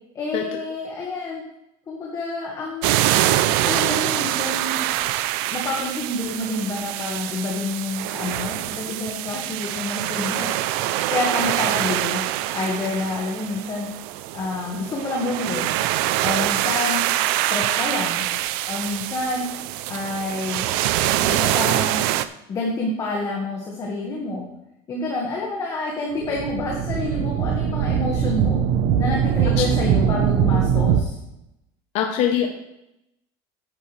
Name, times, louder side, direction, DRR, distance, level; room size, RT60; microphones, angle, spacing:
voice 1, 0.1-1.4 1.9-3.0 3.6-4.8 5.5-10.5 11.1-12.2 12.5-13.9 14.3-15.7 16.2-17.1 17.5-18.3 18.7-19.5 19.9-20.7 21.2-22.1 22.5-24.4 24.9-28.6 29.0-31.2, left 2 dB, 25° left, -2 dB, 1.7 m, -28 dB
sound 1, 2.8-22.2, right 14 dB, 75° right, 0.5 m, -24 dB
sound 2, 26.2-31.0, right 8 dB, 55° right, 0.9 m, -21 dB
voice 2, 31.9-32.5, left 9 dB, 55° left, 3 dB, 1.0 m, -23 dB
10.5 x 9.3 x 3.4 m, 0.86 s
cardioid pair, 150°, 12 cm